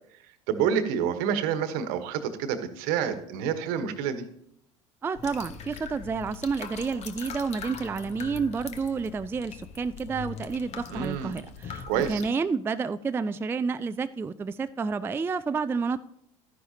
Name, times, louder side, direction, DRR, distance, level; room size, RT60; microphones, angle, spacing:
voice 1, 0.5-4.2 10.9-11.3 11.9-12.2, right 8 dB, 60° right, 10 dB, 1.2 m, -28 dB
voice 2, 5.0-16.0, right 5 dB, 15° right, 12 dB, 0.3 m, -30 dB
sound 1, 5.1-12.3, left 6 dB, 45° left, 1.1 m, -41 dB
12.5 x 10.0 x 2.8 m, 0.72 s
hypercardioid pair, 75°, 16 cm